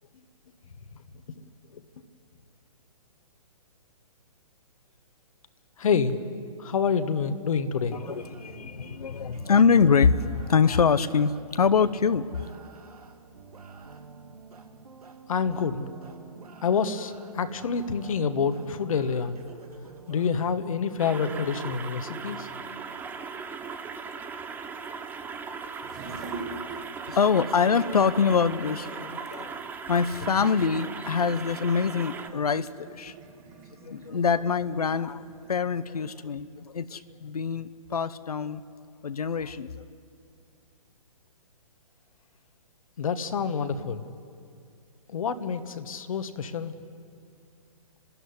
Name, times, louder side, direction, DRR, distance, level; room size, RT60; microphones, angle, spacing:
voice 1, 5.8-6.2 6.6-8.0 15.3-15.9 16.6-19.3 20.1-22.5 43.0-44.0 45.1-46.7, left 6 dB, 65° left, 9 dB, 1.5 m, -27 dB
voice 2, 7.9-12.4 27.1-29.5 29.9-33.1 33.8-35.2 35.5-38.6 39.0-39.8, left 6 dB, 85° left, 13 dB, 0.8 m, -24 dB
sound 1, 8.0-20.4, right 5 dB, 80° right, 2.2 m, -47 dB
sound 2, 21.0-32.3, right 5 dB, 10° right, 0.7 m, -38 dB
sound 3, 25.6-35.6, right 4 dB, 30° right, 2.0 m, -45 dB
29.5 x 13.0 x 9.8 m, 2.3 s
hypercardioid pair, 140°, 19 cm